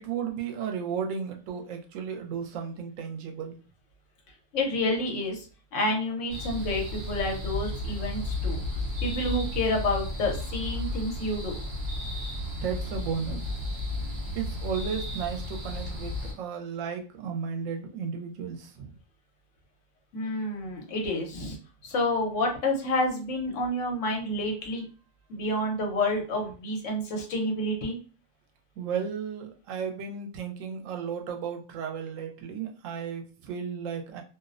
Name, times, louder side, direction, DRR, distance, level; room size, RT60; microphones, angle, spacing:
voice 1, 0.0-3.6 12.6-13.5 14.3-18.9 28.8-34.2, right 7 dB, 80° right, 4 dB, 0.9 m, -34 dB
voice 2, 4.5-5.5 5.7-8.6 9.0-11.6 20.1-21.6 21.8-24.9 25.3-28.0, left 1 dB, 70° left, 1 dB, 1.1 m, -29 dB
sound 1, 6.3-16.3, left 2 dB, 55° right, 1.2 m, -33 dB
2.6 x 2.0 x 2.4 m, 0.37 s
omnidirectional pair, 1.3 m